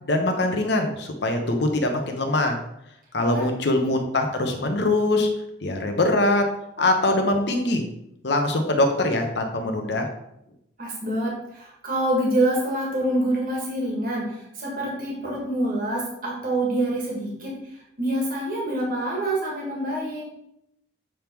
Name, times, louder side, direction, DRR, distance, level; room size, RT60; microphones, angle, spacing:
voice 1, 0.0-2.6 3.1-5.3 5.6-6.4 6.8-7.8 8.2-10.1, left 2 dB, 60° left, 4 dB, 0.8 m, -23 dB
voice 2, 3.2-4.0 10.8-20.3, right 1 dB, 45° right, -3 dB, 1.6 m, -26 dB
7.5 x 3.5 x 4.5 m, 0.80 s
head